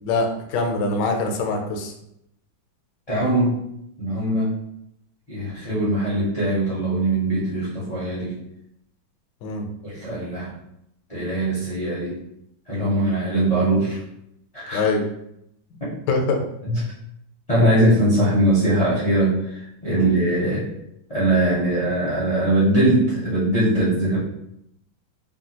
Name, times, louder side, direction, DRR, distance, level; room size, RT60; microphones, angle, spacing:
voice 1, 0.0-1.9 9.4-9.7 14.7-15.0 15.7-16.4 19.9-20.1, left 3 dB, 70° left, 3 dB, 1.1 m, -24 dB
voice 2, 3.1-3.6 4.0-4.5 5.3-8.3 9.8-10.5 11.1-12.2 12.7-14.0 14.5-14.9 16.7-16.8 17.5-20.7 21.1-24.2, right 1 dB, 35° left, -9 dB, 0.5 m, -21 dB
3.5 x 2.2 x 2.8 m, 0.77 s
omnidirectional pair, 2.1 m